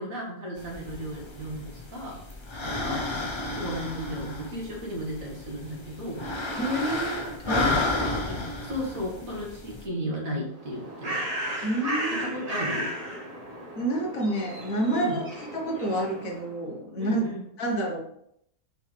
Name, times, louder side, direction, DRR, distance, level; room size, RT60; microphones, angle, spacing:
voice 1, 0.0-2.2 2.6-3.1 3.5-6.2 7.5-11.2 12.1-12.9 14.9-15.2 17.0-17.5, equal, 55° right, -2 dB, 2.2 m, -35 dB
sound 1, 0.6-9.8, left 2 dB, 30° left, 0.5 m, -32 dB
voice 2, 6.6-7.9 11.6-12.3 13.8-15.2 15.5-17.2 17.6-18.0, right 1 dB, 55° left, 0 dB, 1.7 m, -29 dB
Bird, 10.5-16.6, right 1 dB, 25° right, 1.2 m, -35 dB
6.2 x 4.9 x 3.4 m, 0.72 s
omnidirectional pair, 1.7 m